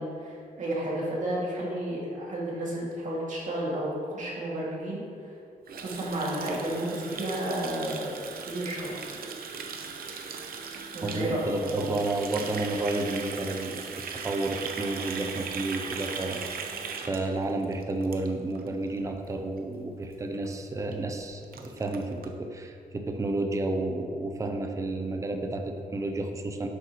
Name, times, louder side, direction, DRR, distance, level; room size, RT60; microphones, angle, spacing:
voice 1, 0.0-5.3 5.8-8.2 8.5-9.0 10.9-11.9, right 1 dB, 55° right, -5 dB, 2.2 m, -32 dB
Water tap faucet, 5.7-18.7 19.0-19.2 19.5-19.9 20.1-20.2 20.4-20.5 20.9-21.0 21.2-22.3, right 5 dB, 75° right, 0.7 m, -38 dB
voice 2, 11.0-16.7 17.1-26.7, right 2 dB, 20° right, 4 dB, 0.6 m, -31 dB
10.5 x 7.8 x 3.0 m, 2.4 s
wide cardioid pair, 170°, 15 cm